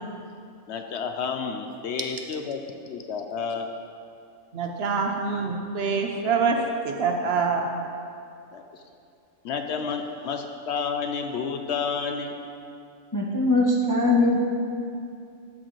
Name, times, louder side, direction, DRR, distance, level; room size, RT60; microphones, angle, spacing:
voice 1, 0.7-2.6 2.9-3.7 8.5-8.6 9.4-12.3, left 5 dB, 65° left, 5 dB, 0.8 m, -30 dB
voice 2, 4.5-7.7, right 4 dB, 60° right, 3 dB, 0.8 m, -25 dB
voice 3, 13.1-14.4, left 2 dB, 25° left, -2 dB, 0.4 m, -21 dB
13.0 x 6.5 x 3.1 m, 2.5 s
omnidirectional pair, 1.3 m